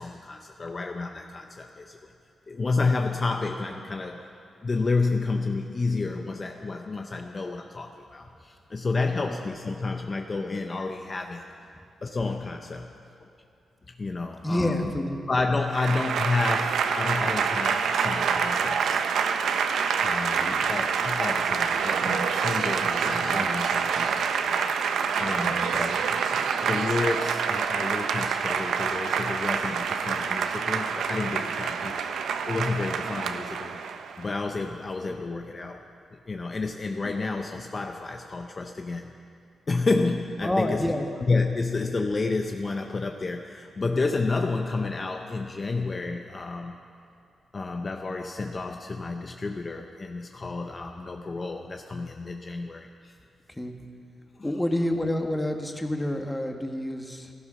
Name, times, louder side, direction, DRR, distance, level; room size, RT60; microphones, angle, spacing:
voice 1, 0.0-2.1 2.5-4.3 4.6-11.5 12.0-12.9 13.2-13.3 13.9-14.9 15.3-19.0 20.0-24.6 25.2-26.1 26.6-32.1 32.4-33.8 34.2-35.8 36.3-39.1 39.7-41.0 41.3-46.8 47.5-53.1 54.4-54.5, left 3 dB, 35° left, 4 dB, 0.8 m, -30 dB
voice 2, 14.4-15.2 20.4-20.6 35.1-35.2 40.4-41.0 53.6-53.7 54.4-57.3, left 1 dB, 10° left, 4 dB, 1.5 m, -28 dB
Applause / Crowd, 15.7-34.2, right 6 dB, 85° right, 0.7 m, -27 dB
15.5 x 14.0 x 6.3 m, 2.5 s
cardioid pair, 90°, 0 cm